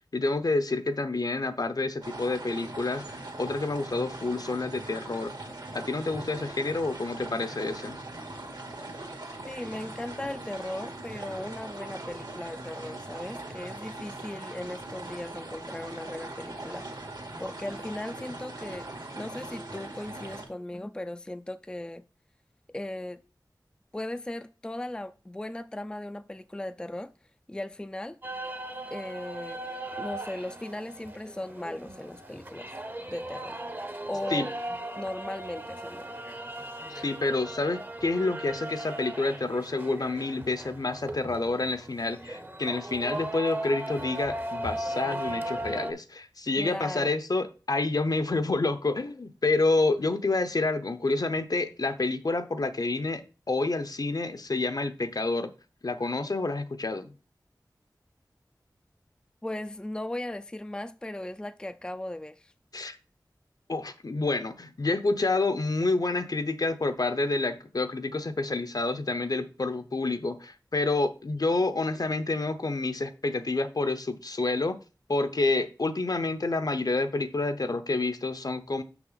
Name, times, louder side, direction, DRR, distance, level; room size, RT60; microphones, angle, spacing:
voice 1, 0.1-3.0 3.4-5.3 5.7-8.0 34.3-34.5 36.9-55.5 55.8-57.1 62.7-63.0 63.7-74.8 75.1-78.8, left 3 dB, 60° left, 0.7 m, -28 dB
sound 1, 2.0-20.4, right 2 dB, 70° right, 2.0 m, -41 dB
voice 2, 9.5-16.9 17.4-22.0 22.7-23.2 23.9-27.1 27.5-28.2 28.9-29.6 30.0-32.8 33.1-33.6 34.1-34.5 35.0-36.2 46.6-47.1 59.4-62.5, left 1 dB, 10° left, 0.4 m, -37 dB
sound 2, 28.2-45.9, right 1 dB, 25° right, 0.8 m, -37 dB
5.9 x 5.9 x 4.0 m
wide cardioid pair, 50°, 8 cm